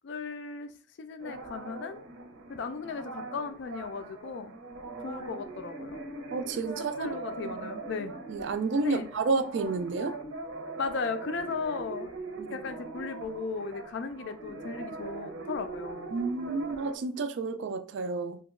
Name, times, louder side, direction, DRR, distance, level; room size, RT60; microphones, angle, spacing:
voice 1, 0.0-0.7 1.0-2.0 2.5-4.5 5.0-6.1 6.7-8.1 8.8-9.1 10.8-12.2 12.5-16.2, left 4 dB, 55° left, 0.3 m, -36 dB
sound 1, 1.2-17.0, right 3 dB, 80° right, 0.7 m, -41 dB
voice 2, 6.3-7.1 7.4-7.6 8.3-10.2 12.4-12.5 16.1-18.4, right 3 dB, 60° right, 0.3 m, -30 dB
2.9 x 2.2 x 3.6 m
head